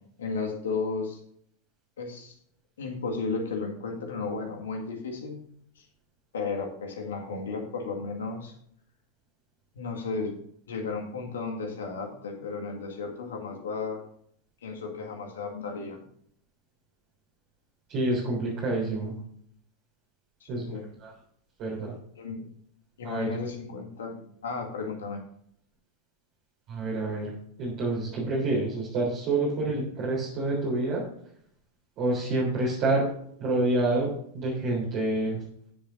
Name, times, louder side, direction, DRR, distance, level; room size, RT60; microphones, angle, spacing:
voice 1, 0.2-1.2 2.0-2.4 2.8-5.4 5.8-5.9 6.3-8.5 9.8-10.4 10.7-14.0 14.6-16.1 20.4-20.8 22.2-22.4 23.0-25.2, left 4 dB, 65° left, 3 dB, 1.9 m, -34 dB
voice 2, 17.9-19.1 20.5-21.1 21.6-21.9 23.0-23.4 26.7-27.3 27.6-31.0 32.0-33.1 33.4-35.4, right 2 dB, 40° right, -5 dB, 3.7 m, -28 dB
19.0 x 7.1 x 2.7 m, 0.66 s
figure-of-eight pair, 90°, 0 cm